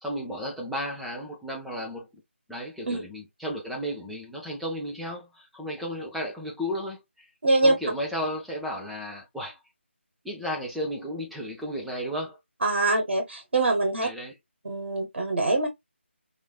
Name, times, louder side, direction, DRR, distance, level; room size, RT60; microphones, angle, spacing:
voice 1, 0.0-2.1 2.5-7.3 7.6-9.6 10.2-12.4 14.0-14.3, equal, ahead, 0.4 m, -34 dB
voice 2, 7.4-7.7 12.6-14.1 14.6-15.7, right 2 dB, 60° right, 1.1 m, -23 dB
3.1 x 2.4 x 2.3 m
figure-of-eight pair, 155°, 7 cm